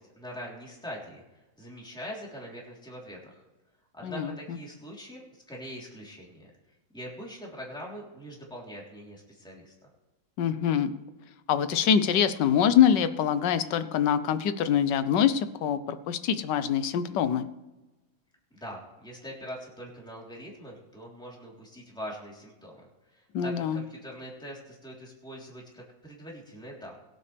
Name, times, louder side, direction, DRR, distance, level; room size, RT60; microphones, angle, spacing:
voice 1, 0.0-3.4 3.9-6.5 6.9-9.7 18.5-26.9, equal, ahead, -3 dB, 3.3 m, -43 dB
voice 2, 4.0-4.6 10.4-10.9 11.5-17.5 23.3-23.8, left 8 dB, 65° left, 12 dB, 1.3 m, -24 dB
22.0 x 8.6 x 3.4 m, 1.1 s
omnidirectional pair, 2.2 m